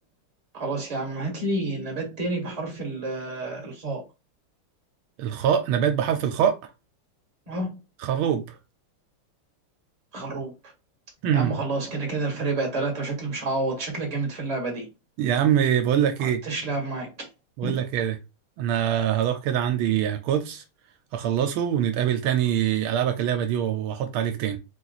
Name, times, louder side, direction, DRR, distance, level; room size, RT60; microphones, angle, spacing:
voice 1, 0.5-4.0 7.5-7.7 10.1-10.5 11.3-14.9 16.2-17.3 17.6-17.7, right 2 dB, 20° right, 1.4 m, -29 dB
voice 2, 5.2-6.6 8.0-8.4 11.2-11.5 15.2-16.4 17.6-18.1 18.6-20.6 21.1-24.6, right 9 dB, 80° right, 1.4 m, -24 dB
4.5 x 2.5 x 4.0 m
omnidirectional pair, 2.4 m